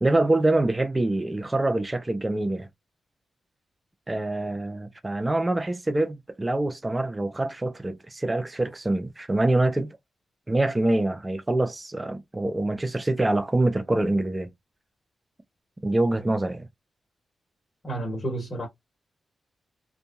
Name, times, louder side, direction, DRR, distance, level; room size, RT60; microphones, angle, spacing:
voice 1, 0.0-2.7 4.1-10.0 10.5-14.5 15.8-16.7, right 2 dB, 25° right, 0.5 m, -25 dB
voice 2, 17.8-18.7, right 1 dB, 45° left, 1.6 m, -30 dB
2.6 x 2.6 x 2.3 m
supercardioid pair, 45°, 0 cm